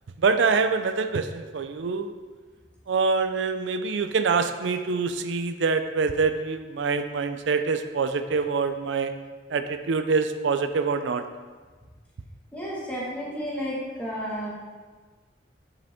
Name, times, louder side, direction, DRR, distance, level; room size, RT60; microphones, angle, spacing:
voice 1, 0.2-2.1 2.9-9.1 9.5-11.2, right 4 dB, 80° right, 9 dB, 0.4 m, -25 dB
voice 2, 12.5-14.5, equal, 10° left, -6 dB, 1.6 m, -32 dB
8.4 x 5.1 x 3.6 m, 1.4 s
head